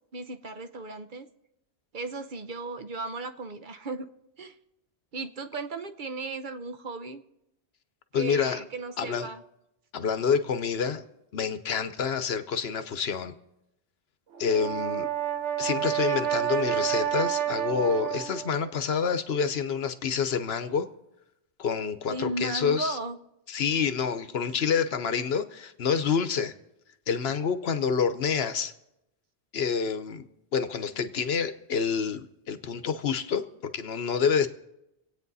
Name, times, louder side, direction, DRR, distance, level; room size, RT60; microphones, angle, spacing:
voice 1, 0.1-1.3 1.9-4.1 4.4-4.6 5.1-7.2 8.1-9.4 22.1-23.2, right 2 dB, 50° right, 9 dB, 0.9 m, -35 dB
voice 2, 8.1-8.6 9.0-9.3 9.9-11.0 11.3-13.3 14.4-15.1 15.6-20.9 21.6-23.0 23.5-26.5 27.1-28.7 29.5-34.5, left 6 dB, 65° left, 10 dB, 1.1 m, -28 dB
Brass instrument, 14.4-18.6, right 11 dB, 85° right, 1.3 m, -29 dB
25.5 x 8.8 x 4.1 m, 0.85 s
omnidirectional pair, 1.1 m